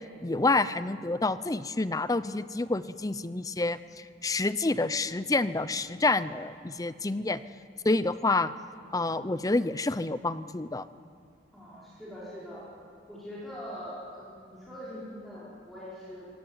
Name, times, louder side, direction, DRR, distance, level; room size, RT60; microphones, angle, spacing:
voice 1, 0.2-3.8 4.2-7.4 7.8-8.5 8.9-10.8, left 2 dB, 20° left, 15 dB, 0.6 m, -28 dB
voice 2, 11.5-12.7 13.1-16.3, equal, ahead, -10 dB, 5.1 m, -42 dB
24.5 x 17.5 x 9.6 m, 2.3 s
head